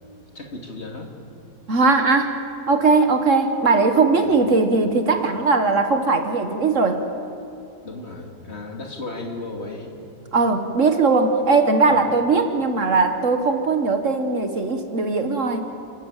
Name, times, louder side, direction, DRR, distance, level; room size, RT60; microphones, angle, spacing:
voice 1, 0.3-1.1 4.1-4.5 7.8-9.9 11.8-12.2, left 2 dB, 45° left, 1 dB, 2.8 m, -35 dB
voice 2, 1.7-2.4 2.7-7.0 10.3-15.6, right 4 dB, 55° right, 6 dB, 1.6 m, -19 dB
29.5 x 13.0 x 8.9 m, 2.7 s
omnidirectional pair, 1.7 m